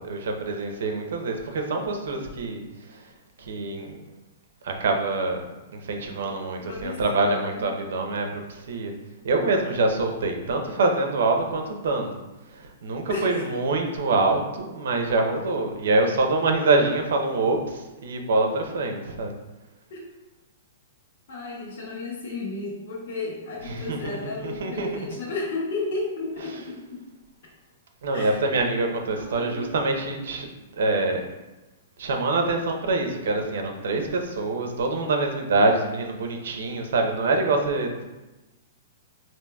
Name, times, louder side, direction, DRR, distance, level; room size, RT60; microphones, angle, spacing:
voice 1, 0.0-3.1 3.4-4.0 4.6-5.4 5.7-8.9 9.2-12.2 12.5-19.3 23.7-24.2 24.4-25.1 28.0-31.2 32.0-38.0, right 3 dB, 75° right, 3 dB, 0.7 m, -25 dB
voice 2, 6.6-7.7 13.1-13.4 19.9-20.0 21.3-27.0 28.1-28.6 29.1-29.7, left 3 dB, 60° left, -9 dB, 1.3 m, -33 dB
5.4 x 2.7 x 2.3 m, 1.1 s
hypercardioid pair, 160°, 0 cm